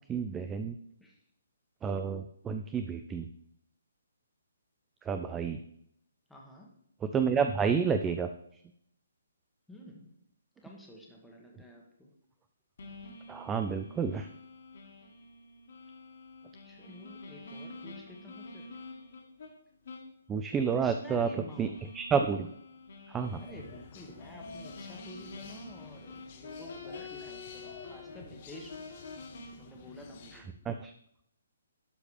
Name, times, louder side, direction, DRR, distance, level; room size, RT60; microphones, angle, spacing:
voice 1, 0.1-0.7 1.8-3.3 5.1-5.6 7.1-8.3 13.3-14.3 20.3-21.3 21.6-21.7 21.9-22.5 23.1-23.4 30.7-30.9, right 6 dB, 15° right, 8 dB, 0.3 m, -30 dB
voice 2, 6.3-6.7 9.7-10.1 10.6-12.1 16.6-18.7 20.7-21.8 23.4-28.9 29.6-30.5, left 1 dB, ahead, -2 dB, 1.4 m, -50 dB
sound 1, 12.8-19.5 19.8-20.1 20.5-20.6 21.4-28.2 28.5-29.5, left 3 dB, 60° left, 1.9 m, -47 dB
sound 2, 23.2-30.4, left 5 dB, 40° left, 1.0 m, -51 dB
12.0 x 4.8 x 3.3 m, 0.73 s
figure-of-eight pair, 135°, 0 cm